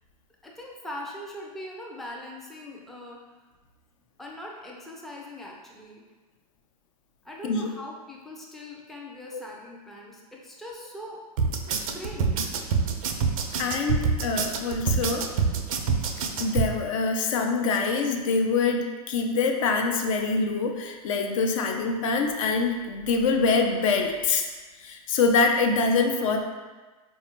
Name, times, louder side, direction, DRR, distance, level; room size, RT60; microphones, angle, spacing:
voice 1, 0.4-3.2 4.2-6.0 7.2-11.2 11.9-12.5, left 1 dB, ahead, -3 dB, 0.4 m, -41 dB
sound 1, 11.4-16.7, right 5 dB, 60° right, 0.4 m, -26 dB
voice 2, 13.5-15.3 16.4-24.5 24.8-26.4, left 4 dB, 55° left, 4 dB, 0.5 m, -25 dB
4.3 x 2.3 x 2.9 m, 1.3 s
hypercardioid pair, 100°, 19 cm